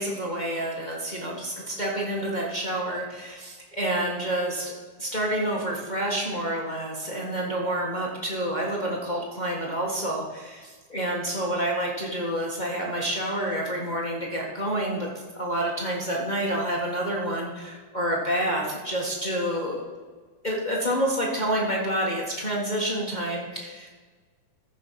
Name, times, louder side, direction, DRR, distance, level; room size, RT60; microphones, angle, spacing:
voice 1, 0.0-4.7 5.0-19.8 20.4-23.9, right 1 dB, 50° left, -3 dB, 0.5 m, -28 dB
14.5 x 5.4 x 5.7 m, 1.4 s
omnidirectional pair, 3.8 m